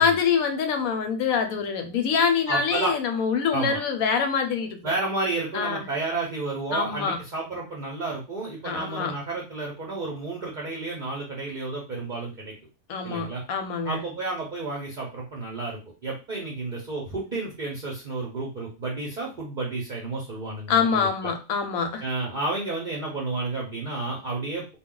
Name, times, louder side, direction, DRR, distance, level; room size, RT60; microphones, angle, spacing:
voice 1, 0.0-4.8 5.5-5.8 6.7-7.2 8.6-9.1 12.9-14.0 20.7-22.0, left 6 dB, 85° left, 1.0 m, -25 dB
voice 2, 2.5-3.0 3.5-3.8 4.8-12.5 13.0-13.4 13.8-21.3 22.0-24.8, right 3 dB, 45° right, 0.6 m, -31 dB
2.3 x 2.3 x 3.7 m
omnidirectional pair, 1.4 m